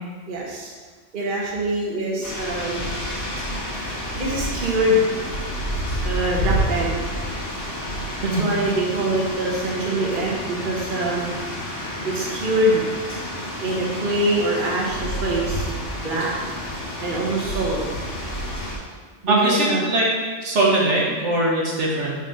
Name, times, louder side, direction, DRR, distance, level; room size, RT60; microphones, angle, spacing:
voice 1, 0.3-0.7 1.1-2.9 4.2-5.0 6.0-7.0 8.2-11.3 12.0-12.9 13.6-16.3 17.0-17.8 19.2-19.8, right 1 dB, 45° right, -4 dB, 1.2 m, -24 dB
sound 1, 2.2-18.8, equal, 85° left, 2.6 m, -29 dB
voice 2, 19.3-20.1 20.4-22.2, right 1 dB, 70° right, -4 dB, 1.7 m, -21 dB
6.5 x 4.1 x 5.4 m, 1.5 s
omnidirectional pair, 1.3 m